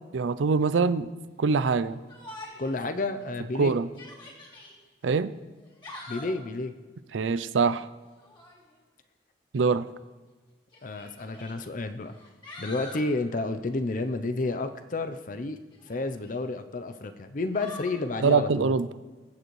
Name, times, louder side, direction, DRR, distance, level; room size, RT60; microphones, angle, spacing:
voice 1, 0.1-1.1 1.4-2.0 3.6-3.9 5.0-5.3 7.1-7.9 9.5-9.8 18.2-18.9, right 4 dB, 85° right, 15 dB, 0.5 m, -24 dB
Yell, 2.1-2.8 3.2-3.3 3.8-4.7 5.6-6.4 8.2-8.6 9.7-9.8 10.7-11.5 12.1-13.0 15.7-16.4 17.5-18.0, left 1 dB, 25° left, 3.0 m, -44 dB
voice 2, 2.6-3.7 6.1-6.7 10.8-12.1 12.6-15.6 15.9-18.7, left 2 dB, 45° left, 9 dB, 0.6 m, -31 dB
23.0 x 7.7 x 3.2 m, 1.3 s
head